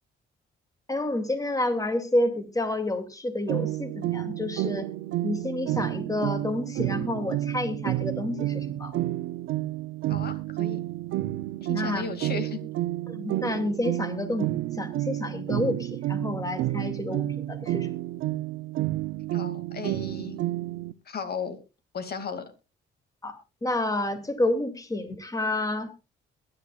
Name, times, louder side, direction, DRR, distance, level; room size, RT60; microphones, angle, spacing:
voice 1, 0.9-4.9 5.2-8.9 11.7-12.1 13.1-18.0 23.2-25.9, left 1 dB, 15° left, 8 dB, 2.5 m, -29 dB
sound 1, 3.5-20.9, right 15 dB, 85° right, 0.6 m, -30 dB
voice 2, 10.1-10.8 11.6-12.6 19.3-20.4 21.1-21.6 21.9-22.4, left 5 dB, 55° left, 9 dB, 2.5 m, -35 dB
22.0 x 11.0 x 2.4 m, 0.29 s
cardioid pair, 90°, 20 cm